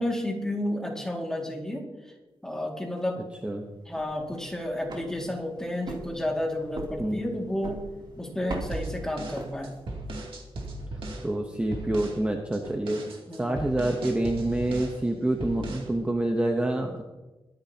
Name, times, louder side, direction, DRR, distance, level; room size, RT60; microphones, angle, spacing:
voice 1, 0.0-1.8 2.4-3.3 3.9-7.8 8.1-9.8 13.3-13.6, left 1 dB, 5° left, 0 dB, 2.1 m, -31 dB
sound 1, 3.8-10.1, right 2 dB, 55° right, 2.8 m, -41 dB
voice 2, 7.0-7.3 11.2-13.0 13.4-17.0, right 1 dB, 15° right, 3 dB, 0.9 m, -27 dB
sound 2, 8.7-11.3 11.7-12.2 12.5-15.0 15.4-15.9, right 1 dB, 70° right, 2.4 m, -37 dB
22.5 x 10.5 x 2.9 m, 1.2 s
wide cardioid pair, 170°, 9 cm